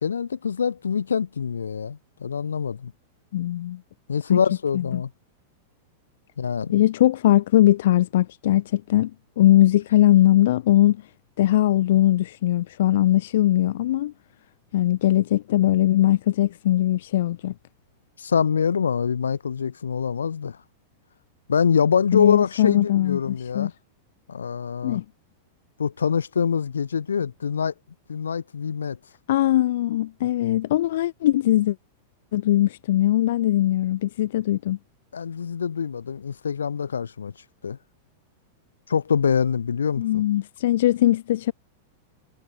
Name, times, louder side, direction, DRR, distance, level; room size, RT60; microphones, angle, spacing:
voice 1, 0.0-2.9 4.1-5.1 6.4-6.7 18.2-20.6 21.5-23.7 24.3-25.0 25.8-27.7 28.1-29.0 35.1-37.3 37.6-37.8 38.9-40.2, left 6 dB, 75° left, 1.0 m, -24 dB
voice 2, 3.3-3.8 4.3-4.4 4.7-5.0 6.7-9.1 9.4-11.0 11.4-14.1 14.7-17.5 22.1-23.7 24.8-25.0 29.3-31.8 32.3-34.8 40.0-41.5, left 14 dB, 60° left, 0.3 m, -20 dB
figure-of-eight pair, 95°, 0 cm